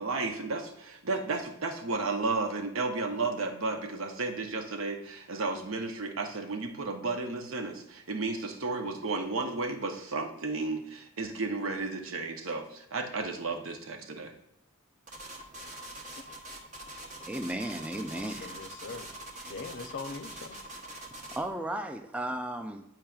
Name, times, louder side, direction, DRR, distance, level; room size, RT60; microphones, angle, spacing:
voice 1, 0.0-14.3, right 3 dB, 75° right, 4 dB, 0.8 m, -33 dB
sound 1, 15.1-21.5, right 1 dB, 35° right, 0.9 m, -44 dB
voice 2, 16.2-17.1 18.1-19.1 19.4-20.6, left 4 dB, 55° left, 8 dB, 0.5 m, -43 dB
voice 3, 17.2-18.6 21.3-22.8, right 1 dB, 5° right, 5 dB, 0.3 m, -35 dB
8.9 x 4.7 x 2.3 m, 0.80 s
head